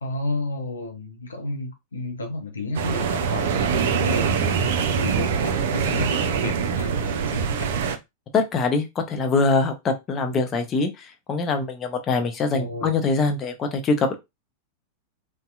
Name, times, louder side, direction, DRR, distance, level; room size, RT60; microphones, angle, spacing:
voice 1, 0.0-4.6 4.9-7.8 12.5-12.9, left 2 dB, 75° left, 0.5 m, -32 dB
sound 1, 2.7-8.0, right 6 dB, 55° right, 0.4 m, -23 dB
voice 2, 8.3-14.1, left 3 dB, 25° left, 0.6 m, -23 dB
2.7 x 2.1 x 2.3 m
figure-of-eight pair, 90°, 0 cm